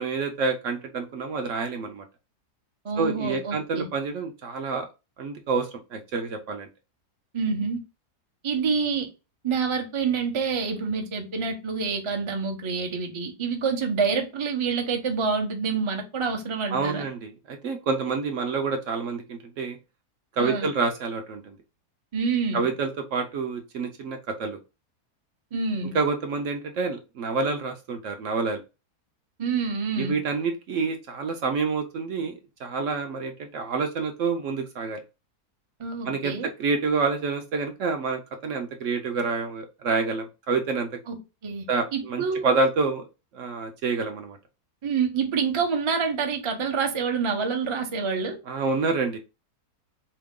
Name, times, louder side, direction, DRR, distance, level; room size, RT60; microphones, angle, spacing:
voice 1, 0.0-2.0 3.0-4.9 5.2-6.7 16.7-19.8 20.4-21.6 22.5-24.6 25.9-28.6 30.0-35.0 36.0-40.9 41.7-43.0 43.3-44.4 48.5-49.2, right 4 dB, 65° right, 0.8 m, -28 dB
voice 2, 2.8-3.9 7.3-7.8 8.4-9.1 9.4-17.0 20.4-20.7 22.1-22.7 25.5-25.9 29.4-30.2 35.8-36.5 41.1-42.5 44.8-48.4, right 5 dB, 45° right, 0.4 m, -27 dB
3.8 x 2.9 x 3.6 m
omnidirectional pair, 1.7 m